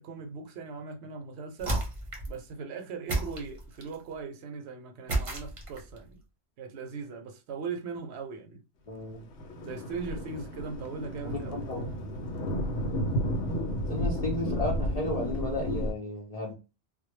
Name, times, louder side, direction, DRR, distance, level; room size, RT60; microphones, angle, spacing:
voice 1, 0.0-1.8 2.3-6.2 6.6-8.6 9.6-11.7, right 5 dB, 75° right, 0.8 m, -39 dB
sound 1, 1.6-2.4 3.1-4.0 5.1-6.0, right 2 dB, 35° right, 0.7 m, -32 dB
voice 2, 8.9-9.2 11.3-12.0 13.9-16.6, left 2 dB, 50° left, 0.5 m, -33 dB
Thunder, 9.1-15.9, equal, 85° left, 0.9 m, -32 dB
2.2 x 2.0 x 3.1 m
omnidirectional pair, 1.1 m